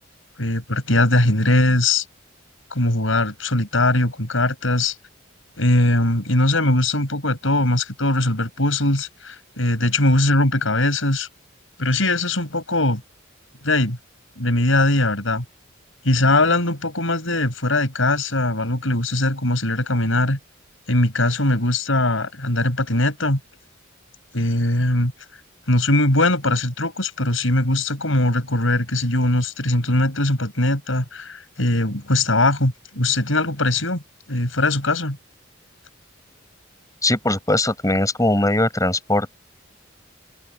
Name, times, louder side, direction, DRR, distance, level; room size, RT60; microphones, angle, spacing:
voice 1, 0.4-2.0 2.7-4.9 5.6-11.3 11.8-13.0 13.6-14.0 14.4-15.4 16.0-20.4 20.9-23.4 24.3-25.1 25.7-34.0 34.3-35.2, left 2 dB, 80° left, 5.3 m, -20 dB
voice 2, 37.0-39.3, left 1 dB, 15° left, 6.8 m, -20 dB
open air
head